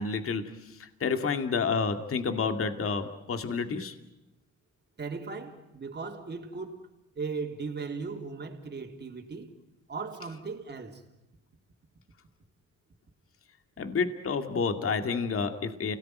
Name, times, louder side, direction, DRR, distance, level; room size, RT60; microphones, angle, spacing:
voice 1, 0.0-4.0 13.8-16.0, left 5 dB, 45° left, 2.2 m, -30 dB
voice 2, 5.0-6.9 7.2-9.6 9.9-11.0, right 4 dB, 35° right, 3.6 m, -37 dB
29.0 x 18.5 x 9.3 m
cardioid pair, 90°, 30 cm